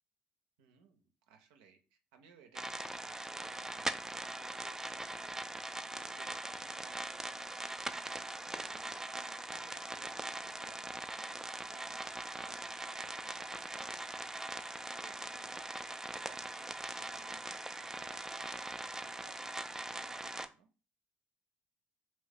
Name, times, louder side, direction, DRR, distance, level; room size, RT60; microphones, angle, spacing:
voice 1, 0.6-8.0 8.5-14.2 15.0-20.7, right 7 dB, 70° right, 5 dB, 0.5 m, -62 dB
sound 1, 2.5-20.5, right 2 dB, 10° right, 0.3 m, -41 dB
2.9 x 2.7 x 3.3 m, 0.33 s
figure-of-eight pair, 50°, 5 cm